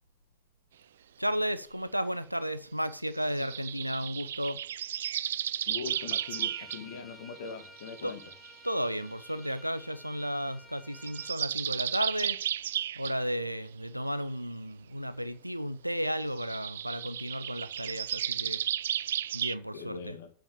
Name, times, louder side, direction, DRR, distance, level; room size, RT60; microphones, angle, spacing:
voice 1, 1.2-4.6 8.0-8.1 8.6-12.4 12.9-18.6 19.3-20.1, equal, 90° right, 0.8 m, -33 dB
sound 1, 3.4-6.8 7.4-8.5 9.5-9.6 10.9-13.2 16.4-19.6, right 10 dB, 60° right, 0.4 m, -33 dB
voice 2, 5.7-8.2 19.7-20.3, left 6 dB, 60° left, 2.0 m, -41 dB
Bowed string instrument, 5.8-11.3, left 1 dB, 5° left, 1.5 m, -53 dB
8.9 x 7.6 x 6.8 m
figure-of-eight pair, 90°, 0 cm